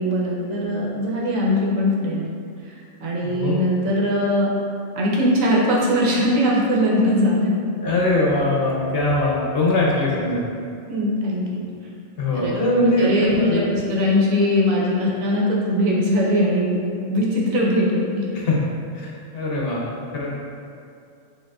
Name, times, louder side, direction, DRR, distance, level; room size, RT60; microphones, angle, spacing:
voice 1, 0.0-2.2 2.7-2.8 3.0-4.5 5.0-7.5 10.9-11.6 12.3-12.5 13.0-16.7 17.1-18.2, left 1 dB, 85° right, -4 dB, 1.2 m, -20 dB
voice 2, 3.2-3.6 7.8-10.4 12.2-13.7 18.3-18.6 18.9-20.4, left 1 dB, 55° left, -4 dB, 0.8 m, -21 dB
7.4 x 2.6 x 2.3 m, 2.4 s
omnidirectional pair, 1.4 m